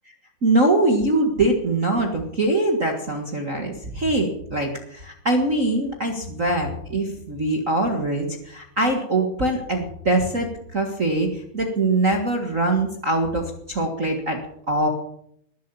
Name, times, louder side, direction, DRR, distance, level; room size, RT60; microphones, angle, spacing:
voice 1, 0.4-14.4 14.7-14.9, right 2 dB, 35° right, 2 dB, 1.3 m, -23 dB
20.0 x 7.6 x 7.0 m, 0.70 s
omnidirectional pair, 3.8 m